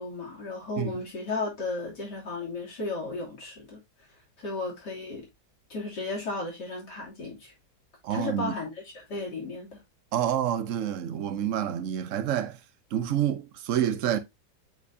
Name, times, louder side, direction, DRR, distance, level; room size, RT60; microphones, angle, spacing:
voice 1, 0.0-3.8 4.4-5.3 5.7-7.5 8.1-9.8, left 3 dB, 70° left, 3.5 m, -34 dB
voice 2, 8.0-8.5 10.1-12.6 12.9-14.2, right 10 dB, 55° right, 1.0 m, -28 dB
8.2 x 4.5 x 2.7 m
omnidirectional pair, 1.9 m